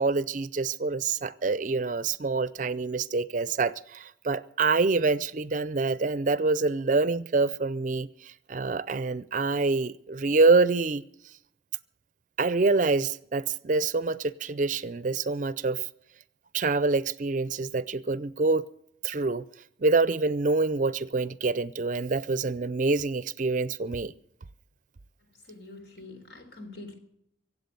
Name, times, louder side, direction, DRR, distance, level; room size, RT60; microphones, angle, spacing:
voice 1, 0.0-11.0 12.4-15.9 16.5-18.6 19.0-19.4 19.8-24.1, right 3 dB, 45° right, 0.5 m, -26 dB
voice 2, 25.5-26.9, left 2 dB, 65° left, 3.9 m, -45 dB
24.0 x 8.3 x 6.7 m
head